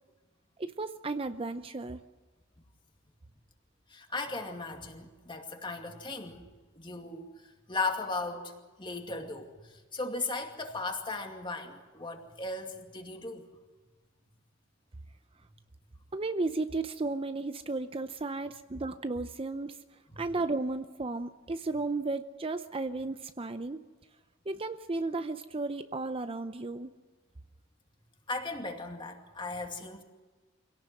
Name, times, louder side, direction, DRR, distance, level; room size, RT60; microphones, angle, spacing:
voice 1, 0.6-2.0 16.1-19.8 20.2-23.8 24.5-26.9, right 3 dB, 30° right, 10 dB, 0.6 m, -34 dB
voice 2, 3.9-6.4 6.7-7.3 7.7-8.5 8.8-9.5 9.9-13.4 20.1-20.2 28.3-30.0, left 3 dB, 25° left, 4 dB, 2.4 m, -36 dB
25.5 x 17.5 x 7.8 m, 1.3 s
head